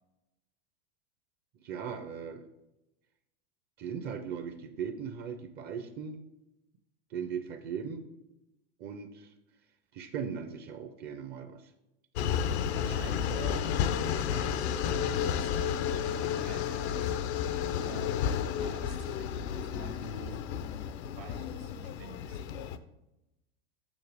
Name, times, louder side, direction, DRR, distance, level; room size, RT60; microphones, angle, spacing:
voice 1, 1.5-2.4 3.8-6.2 7.1-8.1 8.8-9.3 9.9-11.7, right 7 dB, 30° right, 8 dB, 0.5 m, -38 dB
sound 1, 12.2-22.8, left 8 dB, 80° left, 0.6 m, -32 dB
voice 2, 12.2-13.7 14.0-17.2 17.8-18.2 18.5-20.4 21.2-22.4, right 5 dB, 70° right, 5 dB, 1.4 m, -47 dB
7.1 x 6.0 x 3.4 m, 0.92 s
supercardioid pair, 140°, 32 cm